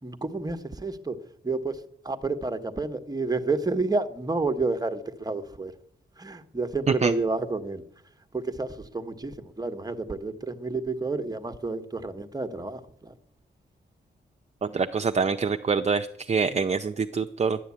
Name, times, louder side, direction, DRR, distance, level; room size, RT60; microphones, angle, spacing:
voice 1, 0.0-5.7 6.2-7.8 8.3-13.1, right 3 dB, 20° right, 8 dB, 1.1 m, -30 dB
voice 2, 14.6-17.6, right 5 dB, 35° right, 7 dB, 0.6 m, -25 dB
11.0 x 10.5 x 8.4 m, 0.70 s
wide cardioid pair, 105°, 19 cm